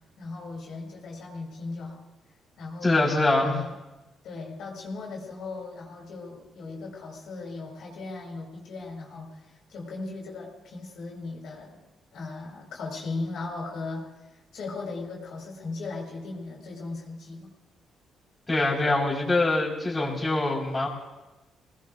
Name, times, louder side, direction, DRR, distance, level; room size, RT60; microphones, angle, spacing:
voice 1, 0.2-2.0 2.6-3.0 3.4-3.7 4.2-11.8 12.1-14.1 14.5-17.5, left 3 dB, 70° left, -2 dB, 4.8 m, -37 dB
voice 2, 2.8-3.6 18.5-20.9, left 2 dB, 20° left, -4 dB, 4.5 m, -24 dB
25.5 x 19.0 x 2.6 m, 1.0 s
cardioid pair, 90°, 0 cm